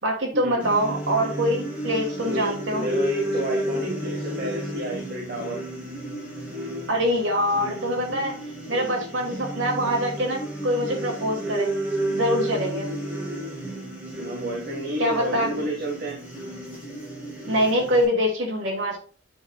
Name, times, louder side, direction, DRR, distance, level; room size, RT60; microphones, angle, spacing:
voice 1, 0.0-2.9 6.9-8.4 8.7-11.7 12.1-12.9 15.0-15.5 17.5-19.0, equal, 80° right, 1 dB, 2.6 m, -24 dB
sound 1, 0.6-18.0, right 1 dB, 10° right, 3.1 m, -32 dB
voice 2, 2.2-5.6 14.2-16.2, equal, 50° right, -2 dB, 1.9 m, -31 dB
9.3 x 5.9 x 2.4 m, 0.40 s
head